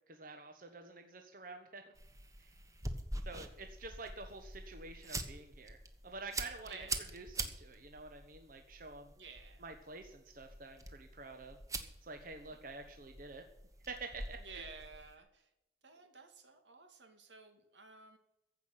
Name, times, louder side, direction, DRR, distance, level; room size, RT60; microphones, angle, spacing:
voice 1, 0.1-1.8 2.4-2.5 3.3-5.8 6.0-6.9 7.1-9.1 9.6-11.6 12.0-13.4 13.9-14.6, right 3 dB, 50° right, 5 dB, 1.2 m, -48 dB
sound 1, 1.9-15.2, right 2 dB, 20° right, 1.3 m, -45 dB
voice 2, 6.6-7.1 9.2-9.6 12.5-12.6 14.4-15.5 15.8-18.2, right 4 dB, 85° right, 6 dB, 2.4 m, -54 dB
15.5 x 5.9 x 9.0 m, 0.88 s
head